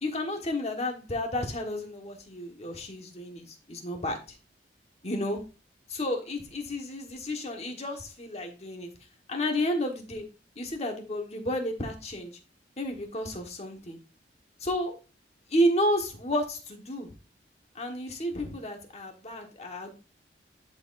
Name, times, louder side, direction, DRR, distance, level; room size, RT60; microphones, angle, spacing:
voice 1, 0.0-4.2 5.0-5.4 5.9-8.9 9.3-10.2 10.5-12.3 12.8-14.0 14.6-15.0 15.5-17.1 17.7-19.9, equal, 35° left, 2 dB, 1.4 m, -31 dB
11.5 x 4.6 x 2.6 m, 0.32 s
head